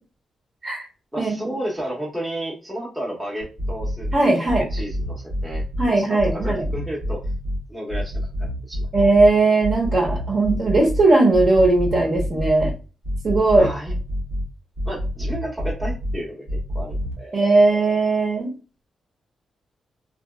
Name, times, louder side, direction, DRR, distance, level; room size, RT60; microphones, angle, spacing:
voice 1, 1.1-7.2 7.7-8.9 13.6-13.9 14.9-17.4 17.7-17.8, right 1 dB, 15° right, -4 dB, 0.8 m, -32 dB
sound 1, 3.4-4.1 4.5-5.9 6.2-7.6 7.9-9.3 9.6-11.0 11.3-12.7 13.0-14.4 14.8-16.1 16.5-17.1, equal, 75° right, 1.2 m, -26 dB
voice 2, 4.1-4.6 5.8-6.6 8.9-12.7 13.2-13.7 17.3-18.5, right 2 dB, 50° right, -2 dB, 1.1 m, -18 dB
2.9 x 2.6 x 2.2 m, 0.32 s
cardioid pair, 105°, 0 cm